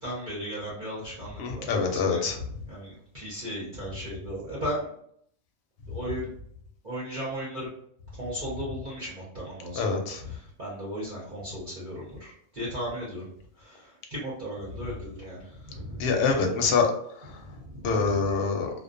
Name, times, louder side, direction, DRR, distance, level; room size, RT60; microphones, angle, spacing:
voice 1, 0.0-2.3 2.7-4.9 5.9-6.3 6.8-7.7 8.1-10.0 10.2-13.3 13.6-16.1 17.4-18.3, equal, 45° right, -7 dB, 0.8 m, -36 dB
voice 2, 1.4-2.4 9.7-10.2 16.0-17.4 17.8-18.7, left 5 dB, 70° left, 2 dB, 0.8 m, -25 dB
2.3 x 2.2 x 2.5 m, 0.67 s
omnidirectional pair, 1.2 m